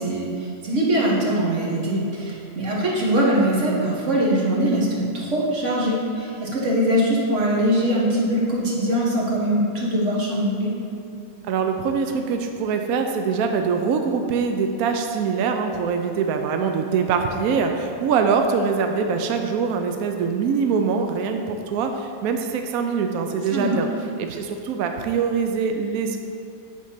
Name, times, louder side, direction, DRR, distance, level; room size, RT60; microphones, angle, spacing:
voice 1, 0.0-10.7 23.5-23.8, right 1 dB, 50° right, -4 dB, 1.8 m, -22 dB
voice 2, 11.5-23.9 24.2-26.2, right 5 dB, 75° right, 5 dB, 1.0 m, -23 dB
9.0 x 4.3 x 5.6 m, 2.5 s
omnidirectional pair, 1.6 m